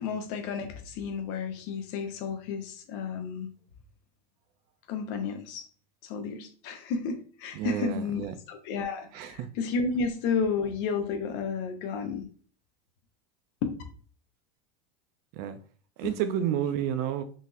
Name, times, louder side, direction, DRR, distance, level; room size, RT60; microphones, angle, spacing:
voice 1, 0.0-3.5 4.9-5.7 6.0-8.2 8.5-12.3 13.6-13.7 16.0-16.1, left 5 dB, 55° left, 0.7 m, -32 dB
voice 2, 7.6-8.3 9.1-9.5 15.4-15.6 16.0-17.2, right 10 dB, 50° right, 0.4 m, -30 dB
3.8 x 2.6 x 2.4 m
supercardioid pair, 125°, 21 cm